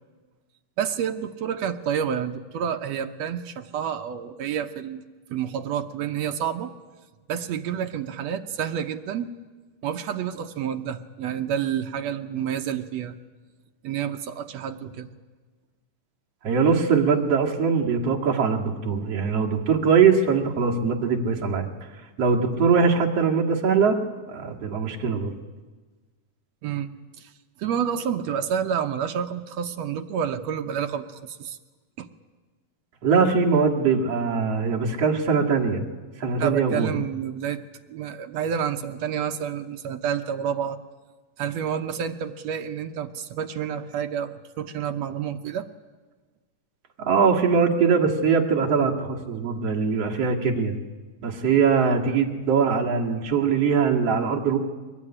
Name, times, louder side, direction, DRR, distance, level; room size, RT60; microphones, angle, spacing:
voice 1, 0.8-5.0 5.3-6.7 7.3-9.3 9.8-13.1 13.8-15.1 26.6-26.9 27.2-27.3 27.6-31.6 32.0-32.1 36.4-37.6 37.9-40.8 41.4-45.7, right 8 dB, 70° right, 6 dB, 1.6 m, -29 dB
voice 2, 16.4-21.7 22.2-24.0 24.3-25.3 33.0-35.8 36.2-36.9 47.0-50.8 51.2-54.6, right 5 dB, 50° right, 0 dB, 2.8 m, -22 dB
23.0 x 19.5 x 10.0 m, 1.3 s
omnidirectional pair, 4.0 m